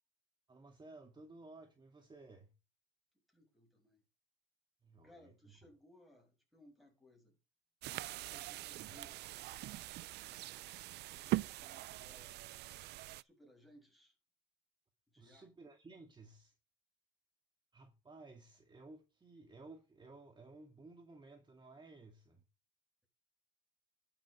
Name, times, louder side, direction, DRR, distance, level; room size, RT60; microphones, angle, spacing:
voice 1, 0.5-2.5 4.8-5.6 8.8-9.0 15.2-16.6 17.7-22.4, right 3 dB, 25° right, 2.4 m, -56 dB
voice 2, 3.3-4.0 5.0-7.4 8.1-9.2 9.5-10.5 11.1-12.5 13.1-14.1 15.1-15.5, left 1 dB, ahead, 7.7 m, -64 dB
sound 1, 7.8-13.2, right 17 dB, 65° right, 0.5 m, -42 dB
11.5 x 8.0 x 5.3 m
supercardioid pair, 80°, 18 cm